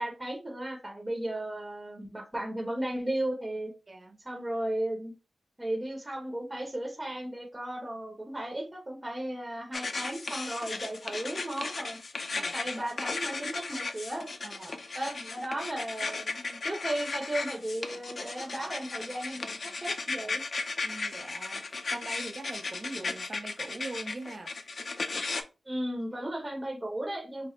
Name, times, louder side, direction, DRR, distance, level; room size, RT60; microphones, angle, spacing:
voice 1, 0.0-3.7 4.2-5.1 5.6-12.0 12.3-14.3 14.9-20.4 25.6-27.5, right 1 dB, 15° right, 0.9 m, -35 dB
voice 2, 3.9-4.2 12.3-12.5 14.4-14.8 20.8-24.5, right 2 dB, 35° right, 0.5 m, -42 dB
sound 1, 9.7-25.4, left 3 dB, 55° left, 0.5 m, -36 dB
5.7 x 2.0 x 3.2 m
wide cardioid pair, 130°, 0 cm